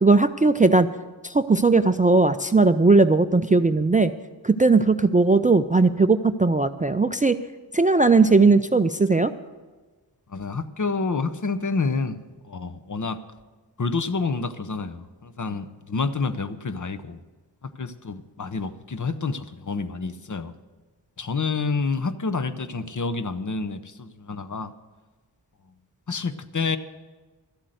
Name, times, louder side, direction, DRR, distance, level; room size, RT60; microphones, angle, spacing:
voice 1, 0.0-0.9 1.2-4.1 4.4-7.4 7.7-9.3, right 3 dB, 20° right, 11 dB, 0.4 m, -18 dB
voice 2, 10.3-12.2 12.5-13.2 13.8-17.2 17.6-20.5 21.2-24.7 26.1-26.8, left 4 dB, 45° left, 12 dB, 0.8 m, -28 dB
12.5 x 8.1 x 7.9 m, 1.3 s
wide cardioid pair, 55°, 44 cm